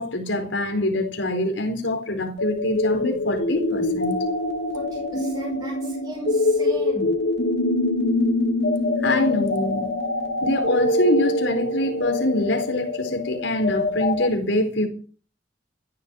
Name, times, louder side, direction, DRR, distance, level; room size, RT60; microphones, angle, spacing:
voice 1, 0.0-4.2 9.0-9.9 10.4-14.9, left 1 dB, 85° left, 4.5 m, -24 dB
sound 1, 2.4-14.3, left 2 dB, 60° left, 3.5 m, -24 dB
voice 2, 4.7-7.1 10.0-10.1, right 1 dB, 20° right, 5.7 m, -36 dB
14.5 x 11.5 x 6.4 m
head